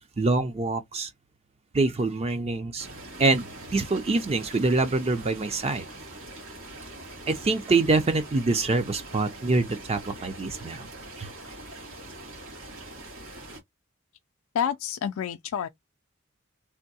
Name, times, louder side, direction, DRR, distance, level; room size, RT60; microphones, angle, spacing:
voice 1, 0.2-1.1 1.7-2.9 3.2-3.4 3.7-5.9 7.3-10.9 11.2-11.3, right 3 dB, 30° right, 0.4 m, -25 dB
sound 1, 2.8-13.6, right 2 dB, 90° right, 2.0 m, -43 dB
voice 2, 14.6-15.7, left 8 dB, 80° left, 0.3 m, -28 dB
3.5 x 2.6 x 2.7 m
head